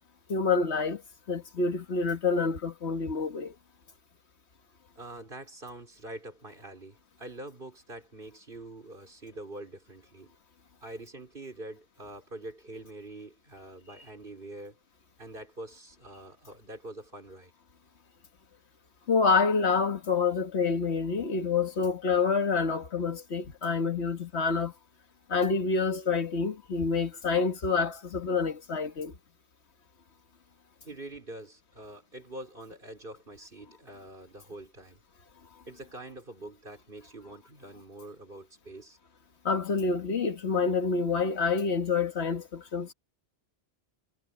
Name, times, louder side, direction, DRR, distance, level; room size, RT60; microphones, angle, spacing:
voice 1, 0.3-1.0 1.3-3.5 19.1-24.7 25.3-29.1 39.5-42.9, left 4 dB, 85° left, 1.8 m, -27 dB
voice 2, 4.9-10.3 10.8-14.8 15.2-17.5 30.8-35.0 35.7-39.0, right 1 dB, 55° right, 5.0 m, -45 dB
omnidirectional pair, 1.1 m